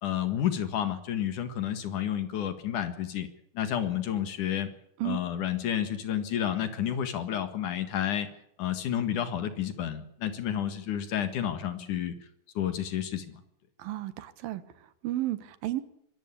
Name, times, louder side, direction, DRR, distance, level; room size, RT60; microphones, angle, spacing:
voice 1, 0.0-3.3 3.5-4.7 5.0-8.3 8.6-12.1 12.6-13.4, left 10 dB, 60° left, 10 dB, 3.0 m, -30 dB
voice 2, 13.8-15.8, right 15 dB, 75° right, 14 dB, 3.0 m, -33 dB
24.0 x 14.0 x 8.5 m, 0.75 s
omnidirectional pair, 4.3 m